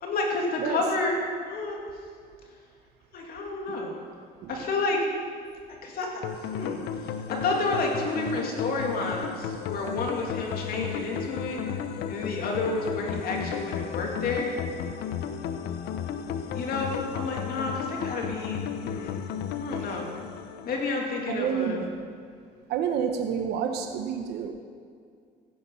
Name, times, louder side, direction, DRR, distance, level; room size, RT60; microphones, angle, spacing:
voice 1, 0.0-1.2 1.4-1.8 3.1-4.0 4.5-5.0 5.8-6.1 6.5-11.6 12.1-14.5 16.5-19.2 19.5-20.1 20.6-21.8, left 3 dB, 60° left, 0 dB, 2.7 m, -30 dB
sound 1, 6.2-21.3, left 8 dB, 80° left, 0.9 m, -34 dB
voice 2, 21.3-21.9 22.7-24.5, right 7 dB, 80° right, 5 dB, 0.9 m, -29 dB
15.0 x 10.5 x 5.7 m, 2.2 s
cardioid pair, 110°, 17 cm